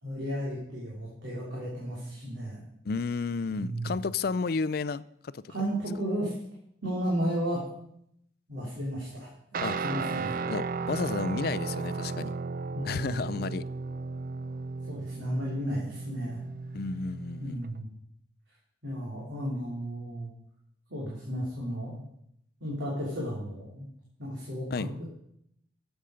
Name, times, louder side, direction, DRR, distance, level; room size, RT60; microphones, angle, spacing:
voice 1, 0.0-2.6 3.6-4.0 5.5-6.3 6.8-7.6 8.5-9.3 9.8-10.4 12.7-13.2 14.8-16.4 17.4-17.9 18.8-20.3 20.9-22.0 22.6-23.8 24.2-25.1, equal, 75° right, 3.6 m, -33 dB
voice 2, 2.9-5.4 9.6-9.8 10.5-12.3 12.9-13.6 16.7-17.6 24.7-24.9, left 4 dB, 50° left, 0.4 m, -32 dB
Guitar, 9.5-17.7, right 4 dB, 45° right, 0.5 m, -35 dB
13.0 x 8.1 x 5.1 m
head